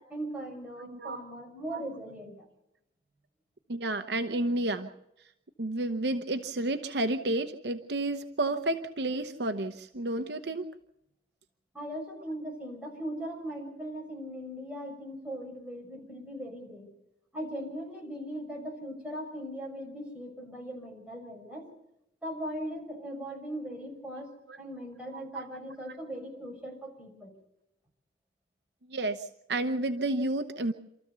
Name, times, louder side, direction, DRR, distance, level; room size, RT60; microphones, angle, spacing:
voice 1, 0.1-2.3 11.7-16.9 17.3-21.7 22.2-27.3, equal, 5° right, -1 dB, 6.3 m, -39 dB
voice 2, 0.8-1.2 1.7-1.8 3.7-4.9 5.6-10.6 25.1-25.4 28.9-30.7, right 2 dB, 65° right, 8 dB, 0.9 m, -31 dB
27.5 x 14.0 x 6.9 m, 0.84 s
head